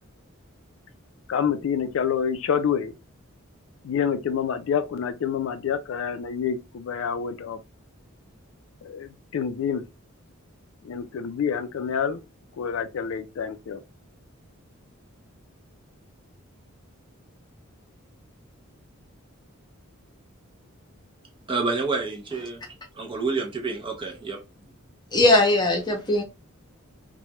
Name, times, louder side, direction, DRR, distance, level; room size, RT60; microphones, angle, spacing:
voice 1, 1.3-2.9 3.8-7.6 8.8-9.9 10.8-12.2 12.6-13.8, left 7 dB, 65° left, 0.3 m, -27 dB
voice 2, 21.5-22.6 23.0-24.4, right 4 dB, 25° right, 0.5 m, -28 dB
voice 3, 25.1-26.2, left 2 dB, 20° left, 0.7 m, -19 dB
3.1 x 2.2 x 2.8 m
head